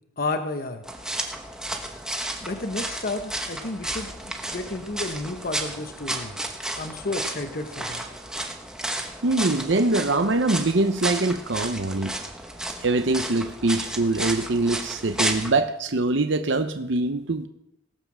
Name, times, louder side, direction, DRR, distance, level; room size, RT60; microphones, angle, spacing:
voice 1, 0.2-0.8 2.4-6.3 6.8-8.0, left 2 dB, 45° left, 7 dB, 0.9 m, -31 dB
sound 1, 0.8-15.5, right 1 dB, 5° right, 1.1 m, -32 dB
voice 2, 9.2-12.2 12.8-17.5, right 2 dB, 60° right, 8 dB, 0.8 m, -23 dB
18.0 x 8.0 x 6.2 m, 0.80 s
head